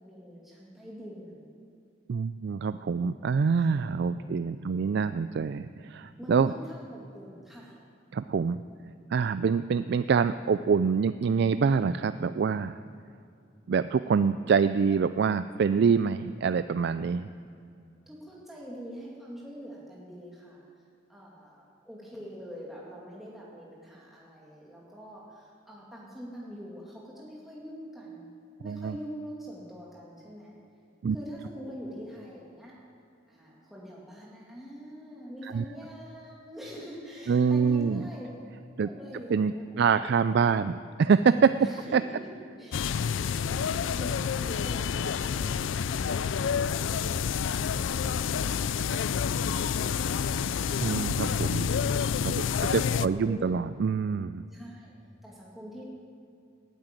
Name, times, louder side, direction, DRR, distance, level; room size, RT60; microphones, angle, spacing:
voice 1, 0.0-1.5 3.7-4.4 6.2-7.8 14.4-14.5 18.1-20.7 21.1-28.2 28.6-30.5 31.1-32.7 33.3-38.3 38.8-40.1 41.6-42.3 42.6-42.8 43.1-50.9 51.9-52.3 52.6-53.6 54.5-54.9 55.2-55.9, equal, ahead, -5 dB, 2.2 m, -45 dB
voice 2, 2.1-6.5 8.1-8.6 9.1-12.8 13.7-17.3 28.6-28.9 31.0-31.2 35.4-35.6 37.3-38.1 38.8-38.9 39.3-42.0 50.8-51.9 52.2-52.5 52.7-54.5, right 5 dB, 60° right, 12 dB, 0.3 m, -25 dB
sound 1, 42.7-53.1, left 7 dB, 80° left, 0.4 m, -28 dB
17.5 x 8.9 x 9.1 m, 2.6 s
head